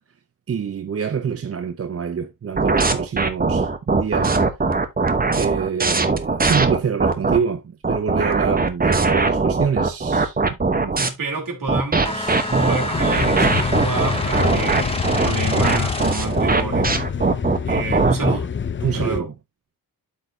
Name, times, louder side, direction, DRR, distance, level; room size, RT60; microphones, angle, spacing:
voice 1, 0.5-4.5 5.4-11.1 18.8-19.3, right 6 dB, 45° right, 0.7 m, -26 dB
sound 1, 2.6-7.4 7.8-11.1 11.7-18.4, right 3 dB, 25° right, 1.0 m, -20 dB
voice 2, 11.0-16.9 17.6-18.5 18.9-19.3, right 3 dB, 65° right, 3.3 m, -27 dB
sound 2, 12.0-16.5, left 1 dB, 15° left, 1.8 m, -28 dB
sound 3, 12.9-19.2, left 7 dB, 35° left, 0.5 m, -26 dB
12.5 x 4.2 x 2.8 m
wide cardioid pair, 105°, 34 cm